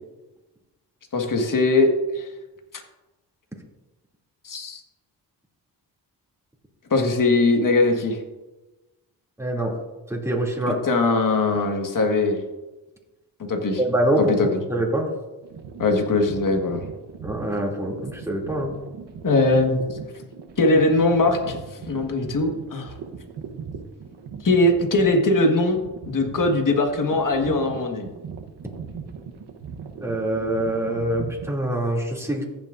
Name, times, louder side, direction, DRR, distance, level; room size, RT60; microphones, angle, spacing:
voice 1, 1.1-2.3 4.4-4.8 6.9-8.2 10.8-12.4 13.5-13.8 14.2-14.5 15.8-16.8 19.2-19.8 20.6-21.6 21.9-22.9 24.4-25.8 26.1-28.1, left 2 dB, 50° left, 3 dB, 1.8 m, -20 dB
voice 2, 9.4-9.7 10.1-10.8 13.8-15.1 17.2-18.8 30.0-32.4, right 1 dB, 5° right, -2 dB, 2.8 m, -25 dB
sound 1, 15.4-31.5, right 6 dB, 75° right, 1.2 m, -39 dB
15.0 x 7.4 x 2.6 m, 1.1 s
cardioid pair, 60°, 41 cm